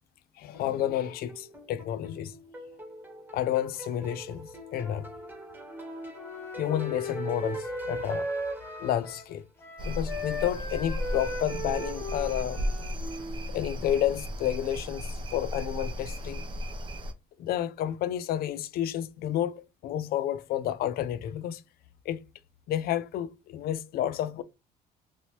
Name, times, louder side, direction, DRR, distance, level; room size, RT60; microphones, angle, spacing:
voice 1, 0.4-2.4 3.3-5.1 6.6-8.3 8.8-9.4 9.8-12.6 13.5-16.6 17.4-21.6 22.1-22.2 22.7-24.4, left 11 dB, 65° left, 0.4 m, -30 dB
sound 1, 0.5-9.4, equal, 10° right, 1.4 m, -46 dB
Wind instrument woodwind instrument, 5.7-9.3 9.6-13.5, equal, 15° left, 0.8 m, -37 dB
sound 2, 9.8-17.1, equal, 30° right, 0.6 m, -35 dB
3.0 x 2.8 x 3.0 m
cardioid pair, 110°, 17 cm